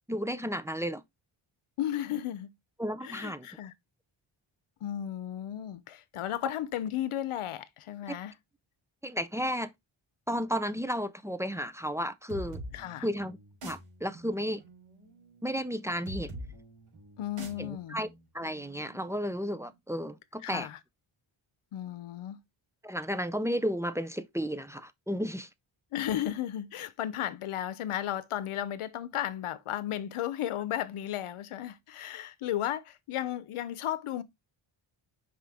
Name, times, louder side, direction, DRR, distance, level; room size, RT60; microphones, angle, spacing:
voice 1, 0.1-1.0 2.8-3.5 8.1-8.2 9.0-9.7 10.3-12.6 13.0-13.4 13.6-14.6 15.4-16.4 17.6-18.1 18.3-20.7 22.8-25.5, equal, 5° right, 0.3 m, -33 dB
voice 2, 1.8-2.5 3.0-3.7 4.8-8.3 12.7-13.1 17.2-18.0 20.4-20.8 21.7-22.4 25.9-34.2, left 11 dB, 85° left, 0.8 m, -34 dB
sound 1, 12.3-19.7, right 1 dB, 90° right, 3.9 m, -46 dB
5.7 x 5.1 x 3.5 m
wide cardioid pair, 120°, 50 cm